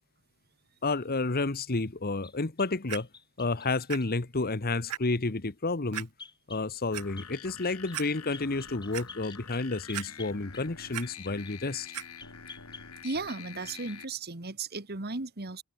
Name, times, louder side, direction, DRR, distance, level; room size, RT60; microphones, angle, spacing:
voice 1, 0.8-3.1 3.4-6.1 6.5-11.9, left 3 dB, 40° left, 1.1 m, -30 dB
sound 1, 2.2-4.1 6.2-6.7 7.2-7.3 7.6-8.0 8.3-11.6 12.2-13.4 13.7-14.0, left 4 dB, 20° left, 6.4 m, -49 dB
Clock, 2.9-3.0 3.9-4.0 4.4-4.5 4.9-5.0 5.9-6.1 6.7-7.0 7.6-7.7 7.9-8.1 8.5-9.1 9.9-10.4 10.7-11.0 11.9-12.0 12.8-12.9, right 12 dB, 90° right, 0.7 m, -37 dB
sound 2, 6.9-14.0, left 6 dB, 80° left, 3.5 m, -47 dB
voice 2, 13.0-15.6, right 3 dB, 45° right, 1.8 m, -35 dB
open air
head